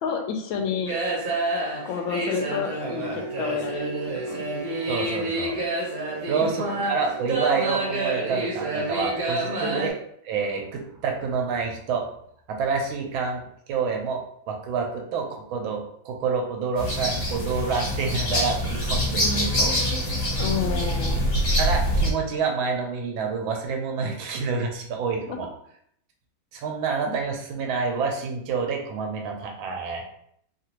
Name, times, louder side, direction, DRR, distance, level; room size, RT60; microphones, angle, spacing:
voice 1, 0.0-1.0 1.8-3.9 4.3-4.4 6.4-6.8 9.6-9.8 19.2-19.5 20.4-21.3 25.3-25.4, left 6 dB, 80° left, 4 dB, 1.3 m, -30 dB
sound 1, 0.9-9.9, right 2 dB, 55° right, 1.3 m, -28 dB
voice 2, 4.9-5.6 6.3-10.0 10.2-12.1 12.5-13.4 13.7-19.7 21.6-25.5 26.5-30.0, right 5 dB, 90° right, 2 dB, 1.4 m, -28 dB
sound 2, 16.8-22.1, equal, 55° left, 1.5 m, -24 dB
3.3 x 2.5 x 2.9 m, 0.68 s
omnidirectional pair, 2.1 m